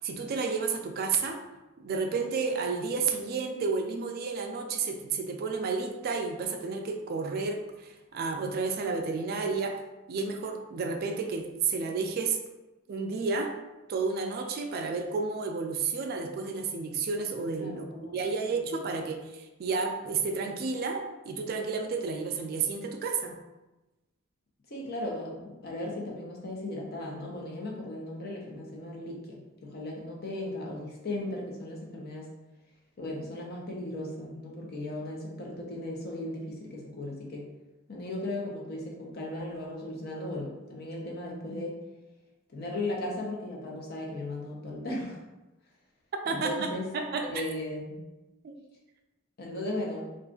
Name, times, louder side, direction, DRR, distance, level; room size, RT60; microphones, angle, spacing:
voice 1, 0.0-1.4 1.8-9.8 10.1-12.4 12.9-13.5 13.9-23.4 46.3-47.3 48.4-48.5, right 4 dB, 50° right, 4 dB, 0.3 m, -31 dB
voice 2, 17.6-18.8 24.7-32.3 33.0-37.5 37.9-41.8 42.5-45.2 46.3-46.9 47.2-48.0 49.4-50.1, left 1 dB, 50° left, -2 dB, 0.7 m, -37 dB
2.4 x 2.3 x 3.7 m, 1.1 s
head